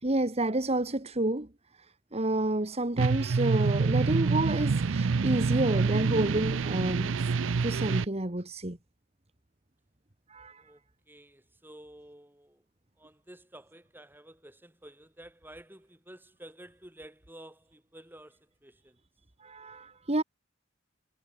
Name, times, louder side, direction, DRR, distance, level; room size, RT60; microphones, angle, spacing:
voice 1, 0.0-1.5 2.1-7.3 7.6-8.8 10.3-10.6 19.4-20.2, right 1 dB, 35° right, 2.1 m, -29 dB
sound 1, 3.0-8.1, right 4 dB, 75° right, 0.5 m, -27 dB
voice 2, 11.1-12.6 13.0-19.0, right 1 dB, 10° right, 7.9 m, -51 dB
head